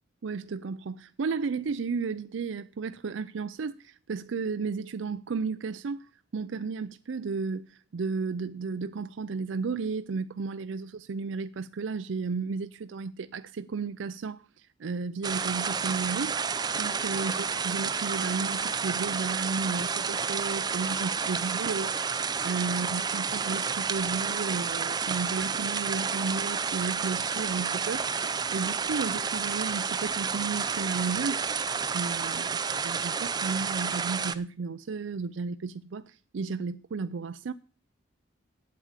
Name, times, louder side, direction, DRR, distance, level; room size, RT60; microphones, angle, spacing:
voice 1, 0.2-16.4 16.8-21.9 22.2-28.1 28.5-31.4 31.9-32.6 32.8-37.5, right 4 dB, 85° right, 0.5 m, -33 dB
sound 1, 15.2-34.4, right 5 dB, 20° right, 0.5 m, -30 dB
8.6 x 8.3 x 7.2 m
head